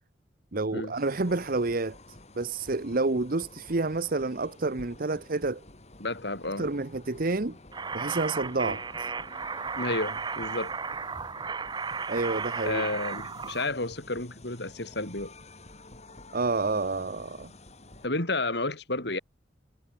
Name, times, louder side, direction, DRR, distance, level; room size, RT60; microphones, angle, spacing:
voice 1, 0.5-2.0 2.4-5.6 6.6-7.6 7.9-9.1 12.1-12.8 16.3-17.5, right 3 dB, 50° right, 1.0 m, -29 dB
sound 1, 0.9-18.1, left 2 dB, 40° left, 5.2 m, -50 dB
voice 2, 6.0-6.7 8.6-8.8 9.8-10.7 12.6-15.3 18.0-19.2, left 2 dB, 65° left, 5.3 m, -31 dB
sound 2, 7.7-13.6, right 5 dB, 25° right, 0.7 m, -34 dB
head